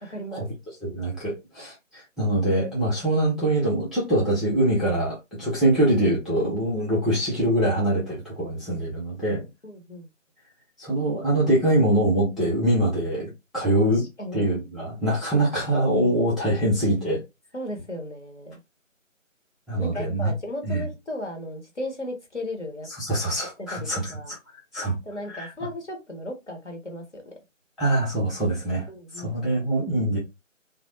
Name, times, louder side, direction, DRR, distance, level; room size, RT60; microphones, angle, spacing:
voice 1, 0.1-0.5 9.6-10.1 13.9-14.5 17.5-18.6 19.8-22.9 23.6-24.3 25.0-27.3 28.9-29.3, left 1 dB, 60° left, 0.9 m, -36 dB
voice 2, 0.8-9.5 10.8-14.0 14.3-17.2 19.7-20.3 20.7-20.9 23.0-24.4 24.7-25.0 25.3-25.5 27.8-28.9 29.1-30.2, right 1 dB, ahead, 0.6 m, -24 dB
2.2 x 2.0 x 2.9 m
figure-of-eight pair, 170°, 40 cm